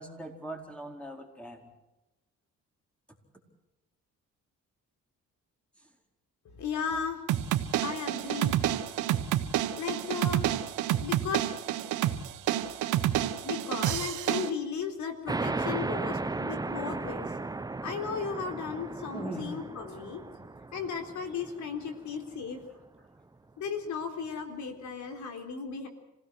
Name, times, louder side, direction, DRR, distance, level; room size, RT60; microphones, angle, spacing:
voice 1, 0.0-1.7 19.1-19.5, right 1 dB, 5° left, 2 dB, 4.6 m, -40 dB
voice 2, 6.5-7.2 7.8-8.6 9.7-10.4 11.0-11.5 13.4-17.4 17.8-20.2 20.7-22.6 23.6-25.9, left 6 dB, 70° left, 5 dB, 3.8 m, -35 dB
sound 1, 7.3-14.5, right 12 dB, 90° right, 1.4 m, -29 dB
sound 2, 15.3-22.4, right 3 dB, 15° right, 0.8 m, -35 dB
27.0 x 17.0 x 6.4 m, 0.99 s
cardioid pair, 90°, 30 cm